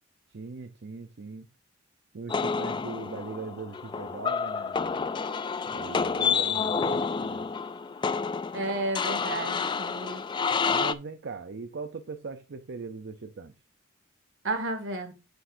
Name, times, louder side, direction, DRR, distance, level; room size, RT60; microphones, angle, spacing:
voice 1, 0.3-1.5 2.1-5.2 5.7-7.5 10.5-13.5, right 4 dB, 55° right, 0.6 m, -40 dB
sound 1, 2.3-10.9, left 5 dB, 25° left, 0.3 m, -29 dB
voice 2, 8.5-10.2 14.4-15.1, right 2 dB, 70° right, 2.0 m, -32 dB
8.1 x 8.1 x 2.6 m
head